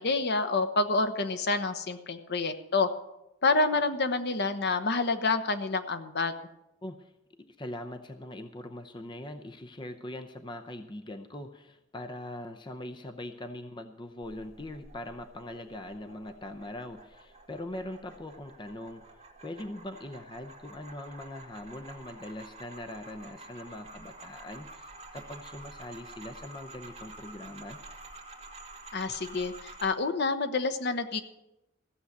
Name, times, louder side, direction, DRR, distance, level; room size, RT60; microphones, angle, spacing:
voice 1, 0.0-2.9 3.4-6.3 28.9-31.2, left 3 dB, 55° left, 9 dB, 1.0 m, -28 dB
voice 2, 6.8-7.1 7.4-19.1 19.4-27.8, left 1 dB, 25° left, 6 dB, 0.7 m, -42 dB
sound 1, 14.2-29.9, right 2 dB, 30° right, 2.2 m, -49 dB
15.5 x 7.2 x 8.0 m, 0.91 s
head